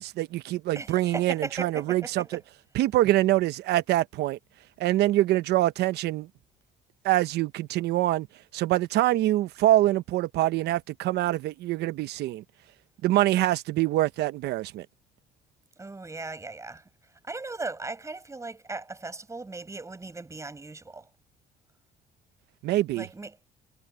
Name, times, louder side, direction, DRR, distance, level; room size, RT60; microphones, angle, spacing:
voice 1, 0.0-2.4 2.7-4.4 4.8-6.3 7.0-8.3 8.5-12.4 13.0-14.9 22.6-23.1, right 15 dB, 75° right, 0.9 m, -25 dB
voice 2, 0.8-2.4 15.8-16.8 17.2-21.1 22.9-23.3, right 3 dB, 15° right, 7.2 m, -37 dB
cardioid pair, 110°, 17 cm